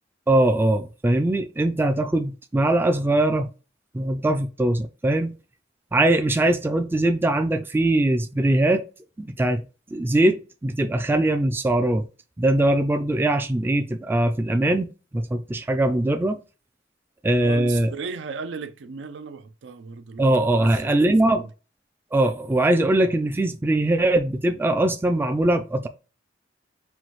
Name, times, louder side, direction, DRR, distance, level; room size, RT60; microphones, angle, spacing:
voice 1, 0.3-3.5 3.9-5.3 5.9-8.8 9.2-9.6 9.9-12.1 12.4-16.4 17.2-17.9 20.2-21.4 22.1-25.9, right 1 dB, 10° right, 0.3 m, -21 dB
voice 2, 17.4-21.5, right 5 dB, 80° right, 0.5 m, -36 dB
5.6 x 2.6 x 3.0 m
head